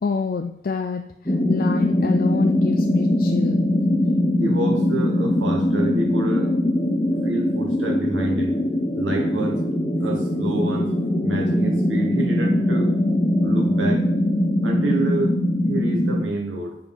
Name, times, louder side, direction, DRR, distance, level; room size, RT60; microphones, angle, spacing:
voice 1, 0.0-3.7, left 5 dB, 50° left, 6 dB, 0.4 m, -27 dB
sound 1, 1.3-16.2, left 1 dB, 20° left, 0.9 m, -21 dB
voice 2, 4.4-6.6 7.2-8.6 8.9-9.6 10.0-10.9 11.2-13.0 13.4-14.0 14.6-15.4 15.6-16.8, right 2 dB, 85° right, 2 dB, 1.4 m, -27 dB
7.9 x 4.5 x 5.4 m, 0.80 s
head